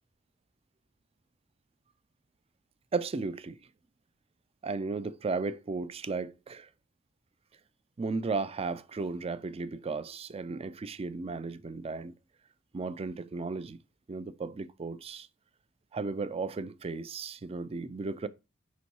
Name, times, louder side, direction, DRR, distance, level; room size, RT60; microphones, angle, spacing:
voice 1, 2.9-3.6 4.6-6.7 8.0-12.2 12.7-13.8 14.1-15.3 15.9-18.3, right 4 dB, 30° right, 0.4 m, -35 dB
5.3 x 4.1 x 4.6 m
head